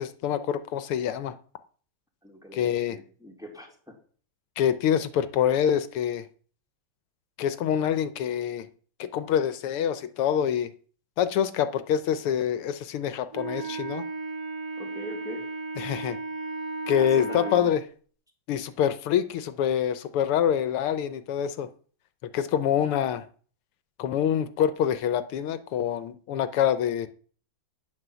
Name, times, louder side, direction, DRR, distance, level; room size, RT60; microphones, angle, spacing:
voice 1, 0.0-1.4 2.5-3.0 4.6-6.3 7.4-8.7 9.0-10.7 11.2-14.0 15.8-16.2 16.9-17.8 18.5-21.7 22.2-23.3 24.0-27.1, left 9 dB, 85° left, 12 dB, 1.8 m, -26 dB
voice 2, 2.2-4.0 14.8-15.4 16.9-17.7, equal, ahead, 1 dB, 3.1 m, -41 dB
Wind instrument woodwind instrument, 13.3-17.7, right 3 dB, 50° right, 3.2 m, -34 dB
9.8 x 9.7 x 6.9 m, 0.44 s
omnidirectional pair, 2.4 m